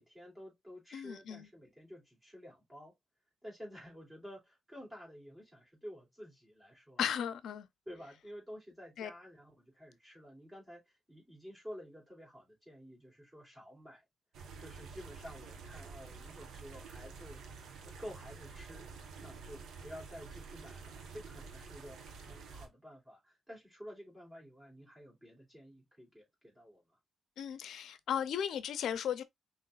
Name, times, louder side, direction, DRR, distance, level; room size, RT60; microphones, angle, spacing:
voice 1, 0.0-2.9 3.4-7.0 7.8-14.0 14.6-17.4 17.8-18.8 19.2-26.8, equal, 15° right, 3.3 m, -51 dB
voice 2, 0.9-1.5 7.0-7.7 9.0-9.1 27.4-29.2, left 9 dB, 70° left, 0.5 m, -36 dB
sound 1, 14.3-22.7, right 4 dB, 70° right, 1.1 m, -49 dB
5.6 x 3.1 x 2.4 m
cardioid pair, 90°, 0 cm